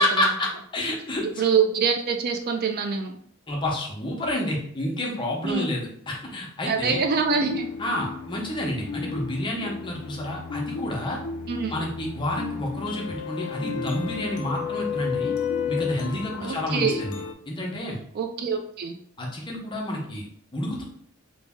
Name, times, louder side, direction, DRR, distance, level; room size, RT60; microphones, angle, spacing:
voice 1, 0.0-1.2 3.5-7.0 7.8-11.2 11.7-15.3 15.7-17.2 17.5-18.0 19.2-20.2 20.5-20.8, left 1 dB, 25° left, -1 dB, 0.6 m, -29 dB
voice 2, 1.4-3.1 5.4-5.7 6.7-7.7 11.5-11.7 16.4-17.0 18.1-18.9, right 6 dB, 45° right, 5 dB, 0.3 m, -25 dB
sound 1, 6.7-17.3, left 6 dB, 90° left, 0.3 m, -33 dB
2.6 x 2.0 x 3.4 m, 0.63 s
head